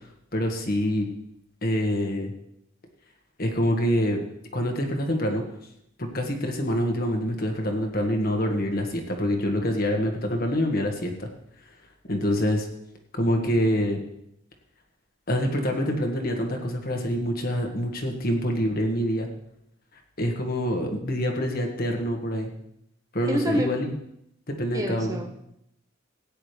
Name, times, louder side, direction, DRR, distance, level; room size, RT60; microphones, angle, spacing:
voice 1, 0.3-1.1 1.6-2.3 3.4-4.2 4.5-5.4 6.0-11.3 12.1-12.7 13.1-14.0 15.3-19.3 20.2-22.5 23.1-23.9 24.5-25.2, equal, 50° left, 3 dB, 1.7 m, -26 dB
voice 2, 23.3-23.9 24.7-25.3, right 1 dB, 15° right, 3 dB, 0.8 m, -28 dB
16.5 x 9.8 x 3.4 m, 0.77 s
head